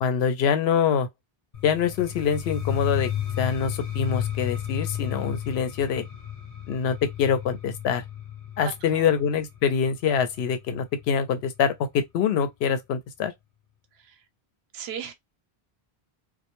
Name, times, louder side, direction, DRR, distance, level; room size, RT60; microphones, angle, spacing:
voice 1, 0.0-1.1 1.6-3.1 3.4-6.0 6.7-8.0 8.6-13.3, left 7 dB, 85° left, 0.8 m, -25 dB
sound 1, 1.5-11.3, left 10 dB, 40° left, 0.7 m, -33 dB
voice 2, 8.6-9.1 13.9-14.2 14.7-15.1, right 8 dB, 80° right, 0.8 m, -37 dB
2.2 x 2.1 x 2.9 m
omnidirectional pair, 1.0 m